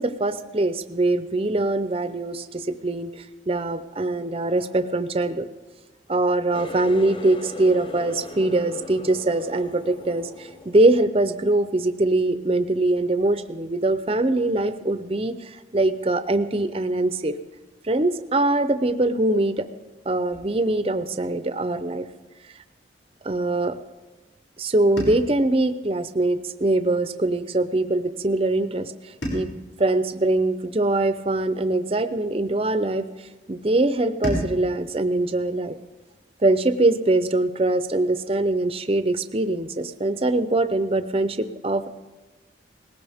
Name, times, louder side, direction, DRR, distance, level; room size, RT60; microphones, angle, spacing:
voice 1, 0.0-5.5 6.1-17.3 17.8-19.7 20.1-22.1 23.2-23.8 24.6-28.9 29.3-29.5 29.8-33.1 33.5-35.7 36.4-41.9, right 2 dB, 30° right, 11 dB, 0.6 m, -23 dB
Water tap faucet, 6.5-12.0 12.4-12.9 13.3-13.6 14.4-14.5, left 3 dB, 25° left, 0.6 m, -39 dB
sound 1, 25.0-27.3 29.2-31.7 34.2-36.8, equal, 75° left, 5.9 m, -37 dB
19.0 x 16.5 x 3.5 m, 1.2 s
head